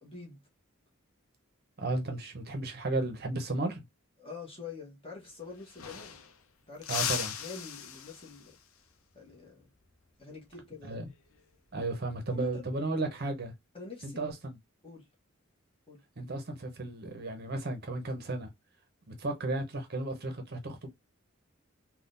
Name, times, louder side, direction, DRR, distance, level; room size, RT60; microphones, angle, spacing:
voice 1, 0.0-0.4 4.2-6.2 6.7-7.1 7.4-8.5 9.1-9.7 10.2-11.0 12.3-12.7 13.7-14.2 14.8-15.1 15.9-16.0, left 4 dB, 25° left, 1.1 m, -46 dB
voice 2, 1.8-3.8 6.9-7.3 10.9-11.1 11.7-13.5 14.0-14.6 16.2-18.5 19.1-20.9, right 2 dB, 45° right, 0.7 m, -34 dB
sound 1, 5.2-5.3 5.5-6.4 6.8-8.6 11.1-11.4 12.8-13.3, left 8 dB, 75° left, 0.6 m, -37 dB
3.6 x 2.3 x 2.5 m
head